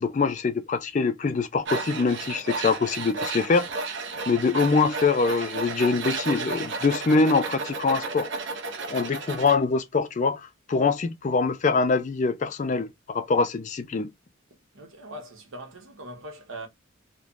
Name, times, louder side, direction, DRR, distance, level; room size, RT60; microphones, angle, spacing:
voice 1, 0.0-3.7 4.3-8.3 8.9-10.4 10.7-14.1, left 4 dB, 35° left, 0.3 m, -24 dB
Tools, 1.6-9.6, right 3 dB, 55° right, 0.6 m, -33 dB
voice 2, 14.5-16.7, right 1 dB, 70° right, 1.0 m, -41 dB
3.2 x 2.1 x 2.4 m
head